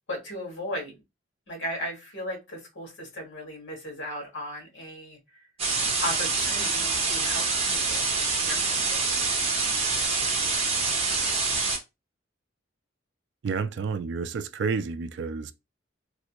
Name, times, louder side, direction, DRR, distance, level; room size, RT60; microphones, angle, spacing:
voice 1, 0.1-0.9 1.5-5.4 6.0-8.1 8.4-9.1, equal, 65° left, 1.7 m, -36 dB
sound 1, 5.6-11.8, right 4 dB, 30° right, 0.9 m, -26 dB
voice 2, 13.4-15.5, right 5 dB, 60° right, 0.3 m, -30 dB
3.2 x 2.6 x 2.9 m
head